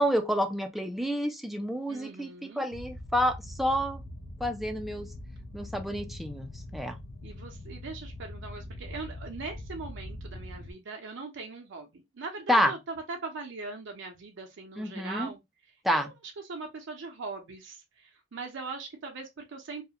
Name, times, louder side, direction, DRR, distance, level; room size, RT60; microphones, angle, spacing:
voice 1, 0.0-4.0 4.4-5.1 5.5-7.0 12.5-12.7 14.8-15.3 15.8-16.1, equal, ahead, 0.3 m, -29 dB
voice 2, 1.9-2.7 7.2-12.8 13.1-15.4 15.9-16.1 16.5-19.8, right 3 dB, 65° right, 0.5 m, -40 dB
sound 1, 2.7-10.7, left 1 dB, 75° left, 0.5 m, -42 dB
2.3 x 2.1 x 2.7 m
head